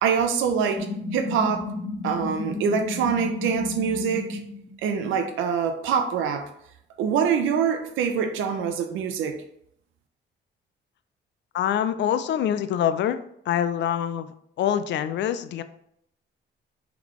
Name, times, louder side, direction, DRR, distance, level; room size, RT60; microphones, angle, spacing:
voice 1, 0.0-1.7 2.0-4.4 4.8-6.5 7.0-9.4, right 6 dB, 85° right, 6 dB, 0.6 m, -25 dB
sound 1, 0.8-4.7, left 3 dB, 25° left, 1.4 m, -32 dB
voice 2, 11.5-13.2 13.5-15.6, left 10 dB, 65° left, 11 dB, 0.4 m, -25 dB
3.9 x 3.5 x 3.0 m, 0.72 s
cardioid pair, 90°, 20 cm